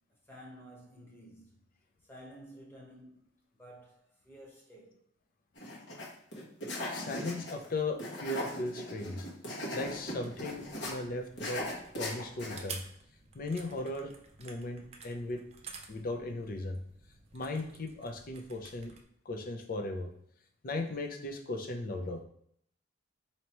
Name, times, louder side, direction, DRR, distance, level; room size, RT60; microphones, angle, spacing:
voice 1, 0.2-1.6 2.1-5.0, equal, 10° left, 1.1 m, -52 dB
sound 1, 5.6-6.1 6.3-7.7 8.0-10.9 11.4-12.6, left 1 dB, 65° left, 1.2 m, -38 dB
voice 2, 6.9-9.3 9.7-11.6 12.0-12.8 13.3-14.1 14.4-15.4 15.9-16.8 17.3-18.9 19.3-20.1 20.6-22.2, left 2 dB, 50° left, 0.6 m, -37 dB
sound 2, 9.8-19.0, right 5 dB, 35° right, 0.5 m, -51 dB
4.5 x 2.9 x 3.0 m
head